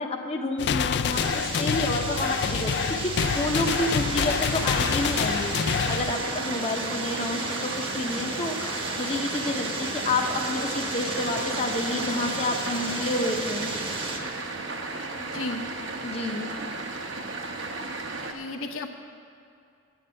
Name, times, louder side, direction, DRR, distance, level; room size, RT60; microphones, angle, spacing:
voice 1, 0.0-2.7 3.0-13.7 14.0-14.1 16.0-16.5, left 2 dB, 30° left, 2 dB, 0.7 m, -29 dB
sound 1, 0.6-6.1, left 7 dB, 55° left, 0.3 m, -27 dB
sound 2, 1.1-14.2, right 2 dB, 25° right, 0.9 m, -34 dB
sound 3, 3.2-18.3, right 3 dB, 65° right, 1.0 m, -35 dB
voice 2, 15.2-15.6 18.3-19.0, left 2 dB, 80° left, 3 dB, 0.9 m, -34 dB
9.8 x 8.7 x 7.5 m, 2.5 s
head